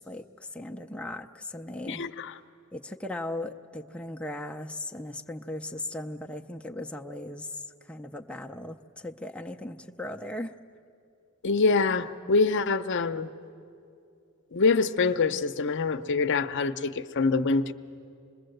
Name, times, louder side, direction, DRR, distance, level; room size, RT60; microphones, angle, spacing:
voice 1, 0.0-2.0 2.7-10.5, left 1 dB, 5° left, 2 dB, 0.5 m, -38 dB
voice 2, 1.9-2.3 11.4-13.3 14.5-17.7, left 4 dB, 60° left, 9 dB, 0.7 m, -25 dB
26.5 x 21.0 x 7.9 m, 2.6 s
head